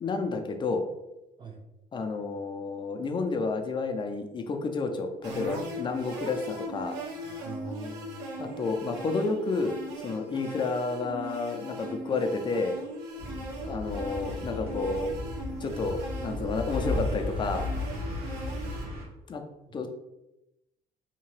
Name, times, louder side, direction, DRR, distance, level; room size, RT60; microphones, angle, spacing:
voice 1, 0.0-0.8 1.9-6.9 8.4-12.7 13.6-15.1 15.6-17.7 19.3-19.4 19.7-19.9, left 3 dB, 30° left, 5 dB, 0.4 m, -30 dB
sound 1, 5.2-18.9, equal, 90° right, 0.7 m, -39 dB
voice 2, 7.2-8.6 13.1-13.2 17.8-18.2, right 3 dB, 25° right, 2 dB, 0.6 m, -43 dB
sound 2, 13.2-19.0, left 1 dB, 65° right, 0.9 m, -34 dB
2.8 x 2.2 x 3.1 m, 0.93 s
cardioid pair, 110°, 17 cm